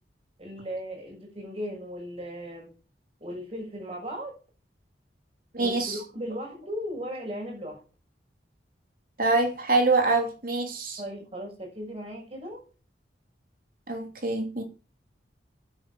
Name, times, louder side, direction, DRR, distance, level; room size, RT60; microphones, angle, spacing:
voice 1, 0.4-2.7 3.2-4.3 5.6-7.8 11.0-12.6, equal, 35° right, 6.2 m, -37 dB
voice 2, 5.5-6.0 9.2-11.0 13.9-14.6, right 3 dB, 50° right, 2.8 m, -25 dB
9.8 x 8.4 x 6.4 m
head